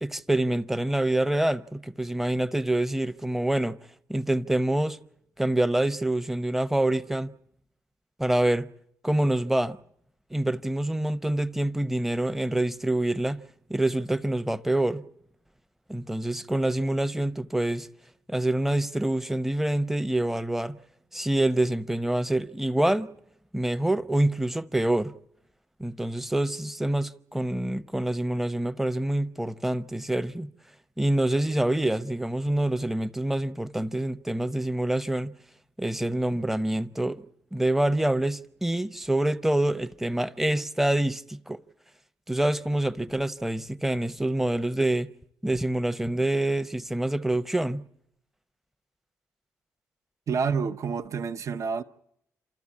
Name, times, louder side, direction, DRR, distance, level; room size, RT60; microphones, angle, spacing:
voice 1, 0.0-3.8 4.1-5.0 5.4-7.3 8.2-8.7 9.0-9.8 10.3-13.4 13.7-15.0 15.9-17.9 18.3-20.8 21.1-23.1 23.5-25.1 25.8-30.5 31.0-35.3 35.8-37.2 37.5-41.6 42.3-45.1 45.4-47.8, right 1 dB, 5° right, 0.8 m, -26 dB
voice 2, 50.3-51.8, right 5 dB, 55° right, 0.8 m, -28 dB
27.5 x 14.0 x 8.5 m
cardioid pair, 75°, 6 cm